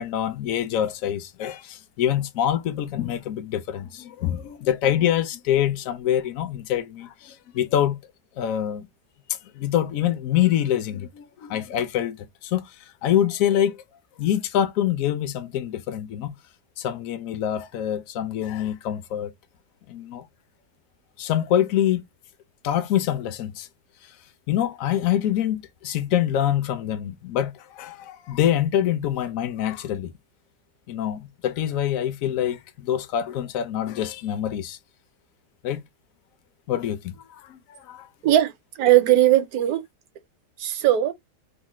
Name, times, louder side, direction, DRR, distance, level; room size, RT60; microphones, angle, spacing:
voice 1, 0.0-8.0 8.4-8.9 9.5-12.7 13.0-13.8 14.2-16.4 16.8-19.3 19.9-20.2 21.2-22.0 22.6-23.7 24.5-30.1 30.9-34.8 35.6-35.8 36.7-37.2 37.5-38.1, left 11 dB, 70° left, 0.8 m, -25 dB
voice 2, 38.2-39.8 40.6-41.1, right 13 dB, 75° right, 1.1 m, -19 dB
3.2 x 2.1 x 2.9 m
omnidirectional pair, 1.7 m